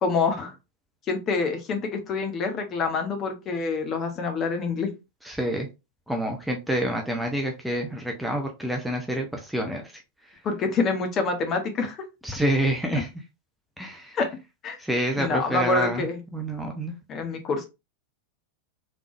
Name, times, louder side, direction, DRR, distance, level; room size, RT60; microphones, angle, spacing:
voice 1, 0.0-0.5 1.1-4.9 10.4-12.0 14.1-14.3 14.6-14.8 15.2-16.2 17.1-17.7, left 4 dB, 30° left, 5 dB, 0.9 m, -26 dB
voice 2, 5.2-5.7 6.1-10.0 12.2-13.1 13.8-14.2 14.8-16.1 16.3-16.9, right 1 dB, ahead, 1 dB, 0.7 m, -27 dB
3.5 x 3.3 x 2.4 m, 0.25 s
figure-of-eight pair, 90°, 0 cm